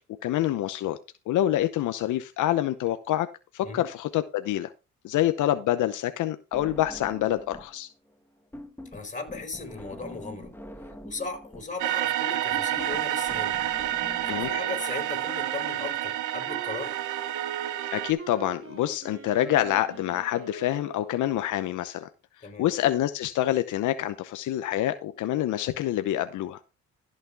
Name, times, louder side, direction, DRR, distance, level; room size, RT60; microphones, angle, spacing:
voice 1, 0.2-1.0 1.3-3.3 3.5-4.7 5.0-7.9 14.3-14.5 17.9-22.1 22.6-26.6, left 13 dB, 80° left, 0.8 m, -26 dB
sound 1, 6.5-7.8 8.0-14.5, left 1 dB, 5° left, 1.6 m, -44 dB
voice 2, 8.9-10.6 11.0-13.7 14.3-17.0 22.4-22.7, left 3 dB, 25° left, 4.7 m, -37 dB
sound 2, 11.8-18.1, right 13 dB, 80° right, 0.9 m, -29 dB
Wind instrument woodwind instrument, 14.3-21.4, right 6 dB, 45° right, 3.0 m, -43 dB
13.5 x 6.6 x 3.4 m
cardioid pair, 90°, 30 cm